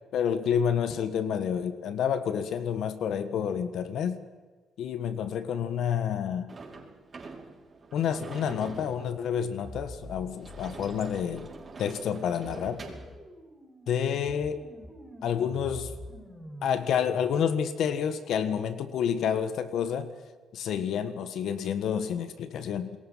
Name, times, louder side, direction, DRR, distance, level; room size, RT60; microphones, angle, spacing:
voice 1, 0.1-4.2 4.8-6.5 7.9-11.5 11.8-12.8 13.9-14.7 15.2-15.9 16.6-20.1 20.5-23.0, left 8 dB, 75° left, 11 dB, 1.5 m, -29 dB
Sliding door / Slam, 6.5-13.1, right 4 dB, 35° right, 5.4 m, -45 dB
sound 1, 9.6-17.3, equal, 10° left, 6.9 m, -46 dB
27.5 x 21.5 x 5.8 m, 1.4 s
cardioid pair, 90°, 0 cm